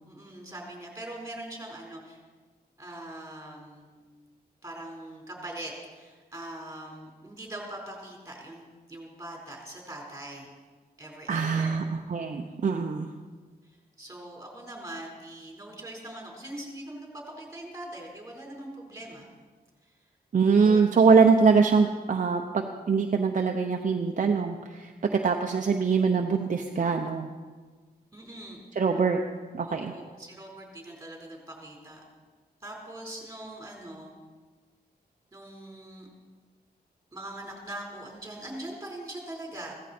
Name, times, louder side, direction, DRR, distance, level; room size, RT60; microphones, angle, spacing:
voice 1, 0.1-2.2 2.8-4.0 4.6-10.5 11.0-11.8 14.0-19.3 19.8-19.9 20.6-20.8 28.1-28.6 29.7-32.0 32.6-34.1 35.3-36.1 37.1-39.7, right 1 dB, 15° right, -1 dB, 4.5 m, -42 dB
voice 2, 11.3-11.8 12.1-13.1 20.3-27.3 28.8-29.2 29.5-29.9, right 5 dB, 50° right, 3 dB, 0.8 m, -23 dB
16.0 x 14.5 x 4.4 m, 1.4 s
wide cardioid pair, 105°, 17 cm